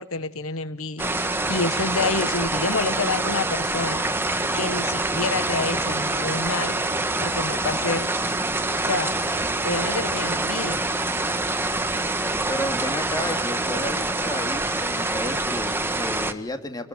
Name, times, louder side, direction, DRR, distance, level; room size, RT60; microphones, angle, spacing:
voice 1, 0.0-6.8 7.2-8.1 8.8-9.1 9.6-10.8, left 3 dB, 90° left, 12 dB, 1.5 m, -28 dB
sound 1, 1.0-16.3, right 2 dB, 10° right, 1.5 m, -25 dB
voice 2, 12.5-16.9, left 1 dB, 20° left, 6 dB, 2.4 m, -32 dB
27.0 x 20.5 x 9.3 m, 0.69 s
head